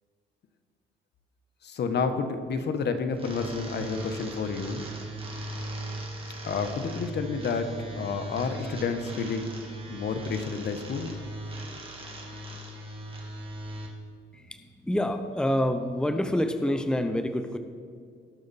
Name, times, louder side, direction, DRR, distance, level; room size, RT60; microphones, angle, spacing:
voice 1, 1.6-4.8 6.4-7.7 8.0-9.5 9.9-11.1, left 5 dB, 60° left, 8 dB, 1.1 m, -30 dB
sound 1, 3.1-13.9, right 1 dB, 25° right, 2.4 m, -38 dB
voice 2, 14.3-17.6, left 1 dB, 5° left, 8 dB, 0.7 m, -27 dB
19.5 x 6.5 x 4.2 m, 2.2 s
cardioid pair, 90°, 20 cm